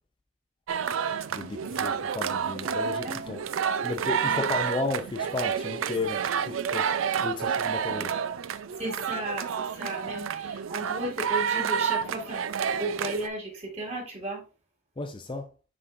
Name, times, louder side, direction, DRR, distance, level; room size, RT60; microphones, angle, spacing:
sound 1, 0.7-13.3, right 7 dB, 80° right, 0.4 m, -29 dB
voice 1, 1.3-3.4 3.8-6.9 7.2-8.2 15.0-15.5, left 3 dB, 25° left, 0.5 m, -33 dB
voice 2, 3.0-3.4 4.2-4.5 8.8-14.4, right 2 dB, 35° right, 2.3 m, -35 dB
9.7 x 3.8 x 2.6 m
head